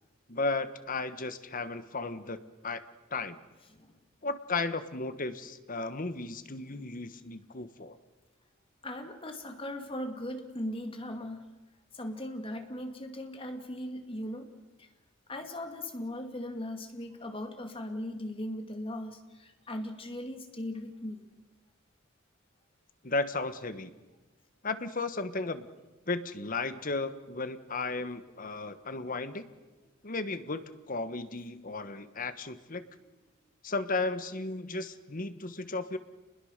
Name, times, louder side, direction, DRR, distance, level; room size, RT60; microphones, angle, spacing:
voice 1, 0.3-2.4 2.6-2.8 3.1-3.4 4.2-8.0 23.0-23.9 24.6-25.7 26.1-29.5 30.0-32.8 33.6-36.0, left 3 dB, 40° left, 11 dB, 1.3 m, -34 dB
voice 2, 8.8-11.5 11.9-14.5 14.8-14.9 15.3-21.3, left 1 dB, 25° left, 5 dB, 2.4 m, -38 dB
29.0 x 21.0 x 6.7 m, 1.2 s
head